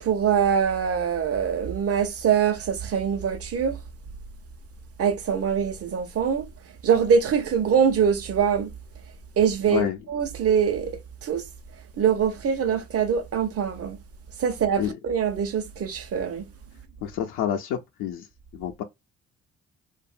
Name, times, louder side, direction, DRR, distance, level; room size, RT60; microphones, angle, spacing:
voice 1, 0.0-3.8 5.0-6.5 6.8-8.7 9.4-11.5 12.0-14.0 14.4-16.4, right 7 dB, 50° right, 0.9 m, -23 dB
voice 2, 17.0-18.3 18.5-18.8, left 10 dB, 90° left, 0.6 m, -28 dB
2.8 x 2.5 x 2.5 m
cardioid pair, 90°, 30 cm